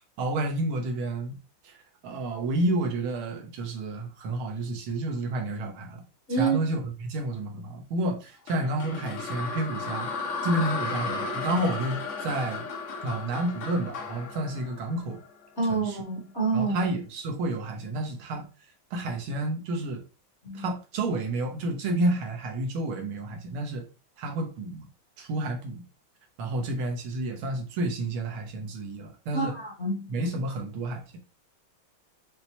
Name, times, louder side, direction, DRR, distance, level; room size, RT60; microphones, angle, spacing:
voice 1, 0.2-1.4 1.6-1.8 2.0-6.0 6.3-10.1 10.4-12.7 13.0-15.2 15.7-16.0 16.5-18.4 18.9-20.0 20.5-23.8 24.2-24.9 25.2-25.8 26.4-29.5 30.1-31.2, right 1 dB, 90° right, 3 dB, 1.7 m, -30 dB
sound 1, 8.5-15.6, left 4 dB, 85° left, 0.6 m, -34 dB
voice 2, 15.6-16.7 20.4-20.6 29.3-30.0, right 4 dB, 40° left, -3 dB, 1.2 m, -27 dB
5.8 x 2.1 x 2.8 m, 0.33 s
omnidirectional pair, 2.3 m